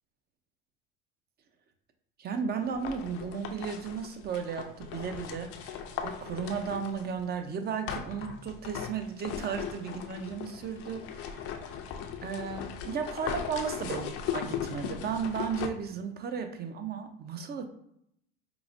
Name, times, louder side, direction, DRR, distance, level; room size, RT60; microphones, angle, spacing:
voice 1, 2.2-11.5 12.2-17.7, right 6 dB, 35° right, 6 dB, 0.6 m, -35 dB
sound 1, 2.6-7.2 7.9-15.7, left 8 dB, 50° left, 0.5 m, -38 dB
4.7 x 2.0 x 2.6 m, 0.73 s
hypercardioid pair, 85°, 29 cm